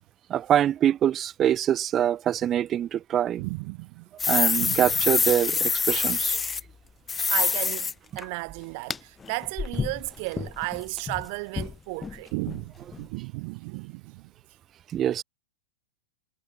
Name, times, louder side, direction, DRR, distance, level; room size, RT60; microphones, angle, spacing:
voice 1, 0.3-3.4 4.3-6.4 14.9-15.2, right 10 dB, 25° right, 0.6 m, -24 dB
voice 2, 3.3-4.1 4.6-5.0 7.3-14.3, right 31 dB, 50° right, 3.2 m, -34 dB
sound 1, 4.2-6.6 7.1-8.2 8.9-9.0 9.2-11.3 11.6-11.7 12.0-12.1 12.5-12.6 12.9-13.0, left 5 dB, 15° left, 1.1 m, -26 dB
hypercardioid pair, 125°, 0 cm